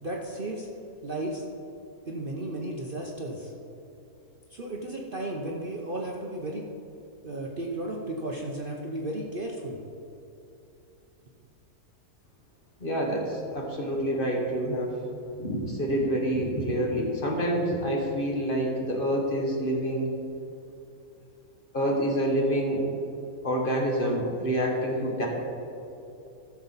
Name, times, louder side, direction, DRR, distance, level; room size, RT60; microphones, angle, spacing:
voice 1, 0.0-0.7 1.0-1.4 2.1-3.5 4.5-6.7 7.2-9.8, right 1 dB, 45° right, -1 dB, 0.9 m, -34 dB
voice 2, 12.8-15.0 15.4-20.1 21.7-22.9 23.4-25.3, equal, 35° left, -1 dB, 1.3 m, -27 dB
14.5 x 7.0 x 4.1 m, 2.8 s
omnidirectional pair, 1.6 m